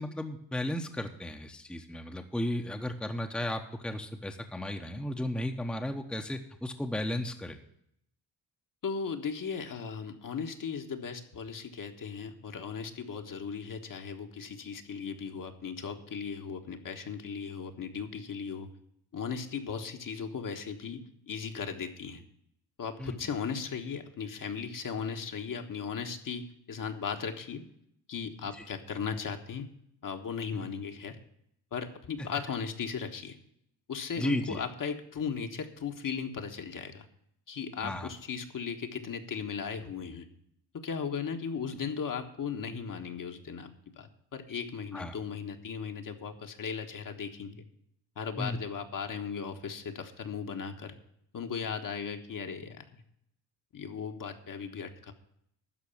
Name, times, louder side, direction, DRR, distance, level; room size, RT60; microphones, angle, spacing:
voice 1, 0.0-7.6 23.0-23.2 28.6-28.7 30.5-30.7 34.2-34.6 37.8-38.1 44.9-45.1 48.4-48.6, left 1 dB, ahead, 5 dB, 1.0 m, -34 dB
voice 2, 8.8-18.7 19.1-22.2 22.8-27.7 28.1-29.7 30.0-31.2 31.7-33.4 33.9-37.1 37.5-40.3 40.7-47.6 48.2-50.9 51.3-53.0 53.7-55.1, left 6 dB, 45° left, 5 dB, 1.5 m, -37 dB
12.5 x 4.7 x 8.6 m, 0.73 s
cardioid pair, 80°, 44 cm